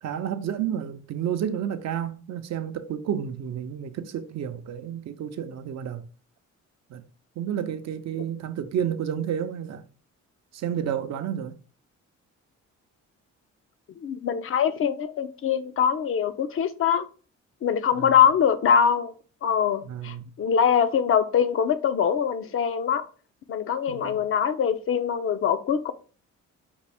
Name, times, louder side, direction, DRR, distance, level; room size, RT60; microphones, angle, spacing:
voice 1, 0.0-6.1 6.9-7.0 7.4-9.8 10.5-11.6 17.9-18.2 19.8-20.3 23.9-24.3, right 9 dB, 60° right, 0.5 m, -31 dB
voice 2, 14.0-17.0 17.6-19.1 19.4-23.1 23.5-25.9, left 8 dB, 45° left, 0.5 m, -23 dB
5.1 x 2.5 x 3.4 m
cardioid pair, 90°, 30 cm